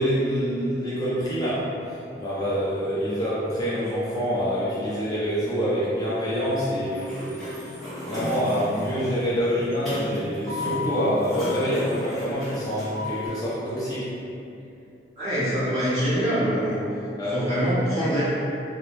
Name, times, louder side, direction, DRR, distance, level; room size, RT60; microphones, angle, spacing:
voice 1, 0.0-1.6 2.2-7.0 7.4-7.5 8.0-14.1 17.2-17.5, equal, 20° left, -10 dB, 0.4 m, -26 dB
Sliding door, 6.8-13.3, left 2 dB, ahead, 0.8 m, -34 dB
voice 2, 15.2-16.8 17.3-18.2, equal, 35° right, -13 dB, 1.2 m, -24 dB
3.1 x 2.1 x 2.5 m, 2.6 s
head